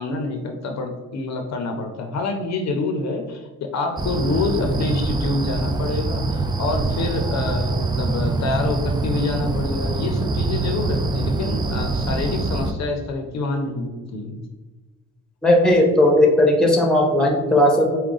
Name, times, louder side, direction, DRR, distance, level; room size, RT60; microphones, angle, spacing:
voice 1, 0.0-14.4, left 3 dB, 60° left, 4 dB, 0.7 m, -27 dB
sound 1, 4.0-12.7, right 3 dB, 15° right, 0.4 m, -24 dB
voice 2, 15.4-18.0, left 1 dB, ahead, 0 dB, 1.0 m, -16 dB
4.8 x 2.2 x 3.8 m, 1.2 s
cardioid pair, 90°, 30 cm